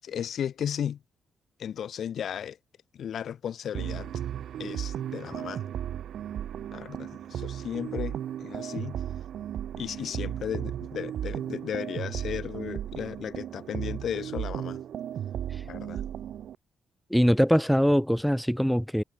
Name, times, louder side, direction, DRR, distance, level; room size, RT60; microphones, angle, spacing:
voice 1, 0.0-1.0 1.6-2.6 2.9-4.1 4.6-5.7 6.7-9.0 9.8-14.8 15.6-16.1, left 9 dB, 60° left, 7.5 m, -35 dB
sound 1, 3.7-16.5, right 10 dB, 70° right, 3.7 m, -35 dB
voice 2, 17.1-19.0, equal, ahead, 1.9 m, -22 dB
cardioid pair, 90°, 0 cm